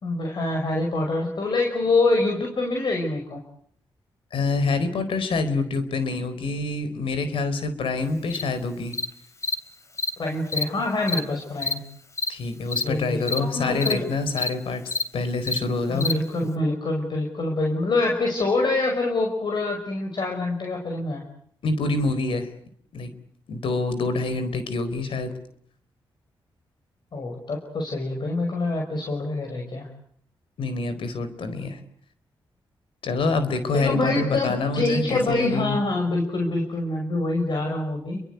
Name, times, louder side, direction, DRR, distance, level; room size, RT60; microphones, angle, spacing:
voice 1, 0.0-3.4 10.2-11.8 12.8-14.1 15.9-21.2 27.1-29.9 33.7-38.2, left 2 dB, 55° left, 2 dB, 5.7 m, -25 dB
voice 2, 4.3-9.0 12.3-16.1 21.6-22.5 22.9-23.1 23.5-25.4 30.6-31.8 33.0-35.8, left 3 dB, 80° left, 11 dB, 4.3 m, -26 dB
Cricket, 8.3-8.4 8.9-9.0 9.4-9.5 10.0-10.1 10.5-10.6 11.1-11.2 11.6-11.7 12.2-12.3 12.7-12.8 13.3-13.4 13.8-13.9 14.4-14.5 14.9-15.0 15.5-15.6 16.0-16.1, left 3 dB, 35° left, 3.6 m, -26 dB
29.5 x 23.0 x 8.1 m, 0.63 s
cardioid pair, 75°, 9 cm